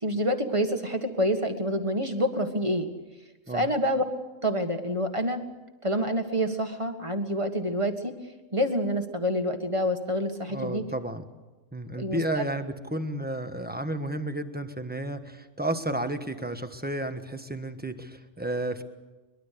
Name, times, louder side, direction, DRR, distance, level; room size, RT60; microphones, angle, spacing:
voice 1, 0.0-2.9 3.5-4.1 4.4-5.4 5.8-8.1 8.5-10.8 12.0-12.2, equal, 25° right, 6 dB, 1.8 m, -27 dB
voice 2, 10.5-11.2 11.7-18.8, right 1 dB, 5° right, 7 dB, 1.2 m, -32 dB
23.5 x 21.5 x 6.8 m, 1.1 s
omnidirectional pair, 1.4 m